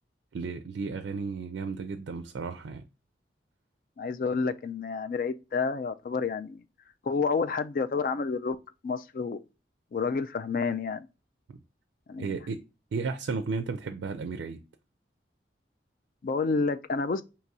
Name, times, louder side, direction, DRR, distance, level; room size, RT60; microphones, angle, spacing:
voice 1, 0.3-2.8 11.5-11.6 12.2-12.6 12.9-14.6, right 4 dB, 85° right, 0.3 m, -34 dB
voice 2, 4.0-6.6 7.0-8.6 8.8-9.4 9.9-11.1 12.1-12.3 16.2-17.2, left 4 dB, 50° left, 0.3 m, -29 dB
4.6 x 2.9 x 2.7 m
head